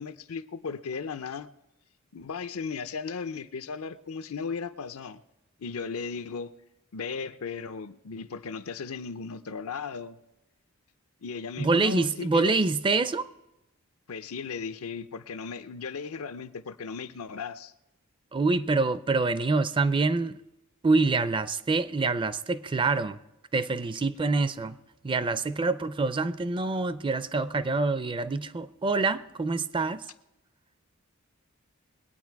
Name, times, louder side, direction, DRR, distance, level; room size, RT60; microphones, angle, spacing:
voice 1, 0.0-1.5 2.1-5.2 5.6-6.5 6.9-10.2 11.2-12.6 14.1-17.7, left 5 dB, 80° left, 0.6 m, -36 dB
voice 2, 11.6-13.3 18.3-20.4 20.8-23.2 23.5-24.8 25.0-30.0, right 3 dB, 25° right, 0.4 m, -26 dB
21.5 x 8.9 x 4.6 m
head